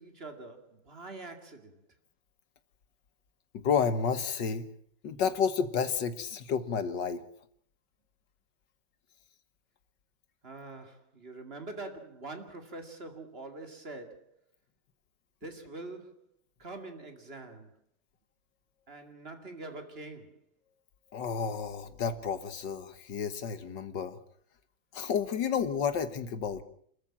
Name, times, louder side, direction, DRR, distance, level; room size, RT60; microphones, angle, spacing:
voice 1, 0.0-1.8 10.4-14.3 15.4-16.3 16.6-17.7 18.9-20.4, right 2 dB, 30° right, 2.5 m, -44 dB
voice 2, 3.5-4.7 5.0-7.2 21.1-24.2 24.9-26.6, left 6 dB, 65° left, 1.9 m, -31 dB
28.5 x 14.0 x 7.4 m
omnidirectional pair, 2.2 m